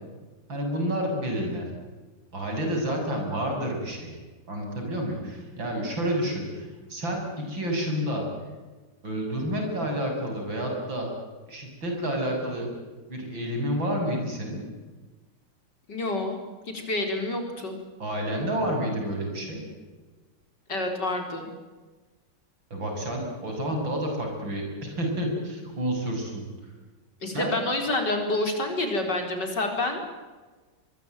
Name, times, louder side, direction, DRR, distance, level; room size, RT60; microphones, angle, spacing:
voice 1, 0.5-1.7 2.3-4.1 4.5-8.2 9.0-11.1 11.5-12.7 13.1-14.6 18.0-19.6 22.7-26.4 27.2-27.6, equal, 80° right, 2 dB, 7.5 m, -29 dB
voice 2, 15.9-16.4 16.7-17.8 20.7-21.5 27.2-30.0, left 2 dB, 60° left, 4 dB, 5.1 m, -28 dB
23.5 x 23.0 x 9.2 m, 1.3 s
omnidirectional pair, 2.1 m